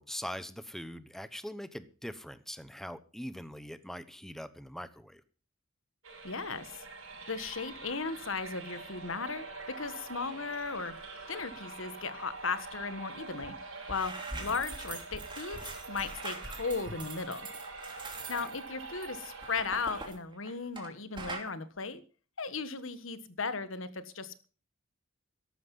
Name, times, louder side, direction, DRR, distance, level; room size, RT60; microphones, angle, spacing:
voice 1, 0.0-5.2 14.3-14.6 18.3-18.5, equal, ahead, 13 dB, 0.9 m, -42 dB
sound 1, 6.0-20.0, right 3 dB, 80° right, 6.4 m, -45 dB
voice 2, 6.2-6.8 7.3-10.9 11.3-13.5 13.9-17.5 18.3-22.0 22.4-24.4, left 4 dB, 70° left, 12 dB, 1.4 m, -36 dB
sound 2, 13.4-13.5 13.8-20.9 21.2-21.5, right 3 dB, 25° right, 2.8 m, -43 dB
13.5 x 12.0 x 5.5 m, 0.37 s
head